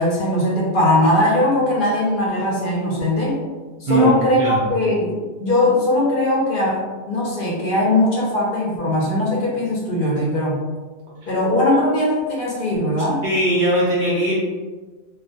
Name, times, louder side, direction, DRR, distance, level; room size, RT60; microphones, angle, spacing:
voice 1, 0.0-3.4 3.8-4.4 4.7-10.6 11.3-13.2, left 1 dB, 55° left, -4 dB, 0.7 m, -20 dB
voice 2, 3.9-4.7 11.2-11.3 13.2-14.3, right 1 dB, 60° right, -5 dB, 0.6 m, -19 dB
2.4 x 2.1 x 2.6 m, 1.3 s
omnidirectional pair, 1.1 m